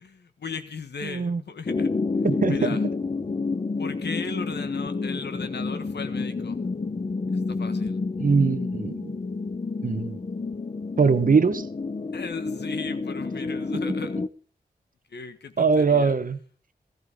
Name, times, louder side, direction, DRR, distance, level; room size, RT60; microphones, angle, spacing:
voice 1, 0.0-1.9 2.5-2.8 3.8-6.6 7.3-8.0 12.1-14.2 15.1-16.1, left 5 dB, 80° left, 1.5 m, -37 dB
voice 2, 1.0-1.4 2.2-2.8 8.2-9.1 9.8-10.2 11.0-11.7 15.6-16.4, right 5 dB, 55° right, 1.0 m, -22 dB
sound 1, 1.6-14.3, left 3 dB, 35° left, 0.7 m, -29 dB
15.5 x 14.5 x 3.6 m
cardioid pair, 55°, 17 cm